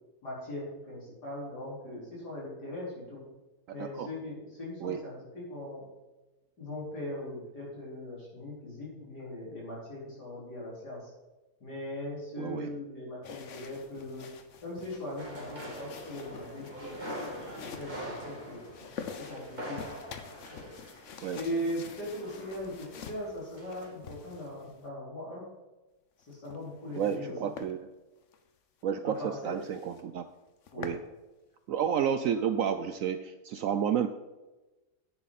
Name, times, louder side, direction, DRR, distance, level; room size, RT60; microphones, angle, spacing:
voice 1, 0.2-3.2 3.7-5.9 6.6-11.1 11.6-14.3 14.6-17.1 17.6-18.6 19.2-19.8 20.5-20.7 21.3-22.7 23.0-25.4 26.3-27.5 29.0-29.6 30.7-30.9, left 1 dB, 80° left, -6 dB, 5.2 m, -39 dB
voice 2, 3.8-4.1 4.8-5.0 12.4-12.7 21.2-21.4 26.9-27.9 28.8-30.3 30.8-31.0 31.7-34.1, right 8 dB, 70° right, 10 dB, 0.8 m, -31 dB
sound 1, 13.2-24.9 26.2-27.2 27.5-27.7 28.2-28.4 28.8-28.9 29.2-29.3 29.6-30.0 30.4-31.1, left 6 dB, 55° left, 1.1 m, -47 dB
sound 2, 15.2-23.3 23.6-23.9, equal, 25° right, 2.6 m, -44 dB
10.5 x 9.6 x 4.3 m, 1.1 s
omnidirectional pair, 1.7 m